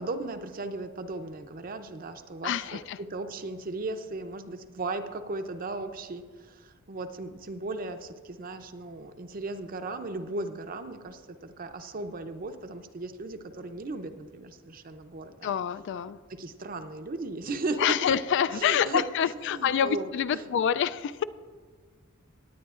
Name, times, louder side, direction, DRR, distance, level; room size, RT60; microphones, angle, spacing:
voice 1, 0.0-15.5 16.3-18.2 18.5-20.4, right 2 dB, 40° right, 9 dB, 0.6 m, -36 dB
voice 2, 2.4-3.0 15.4-16.2 17.8-21.2, left 8 dB, 55° left, 16 dB, 0.3 m, -27 dB
18.0 x 9.6 x 2.5 m, 1.5 s
head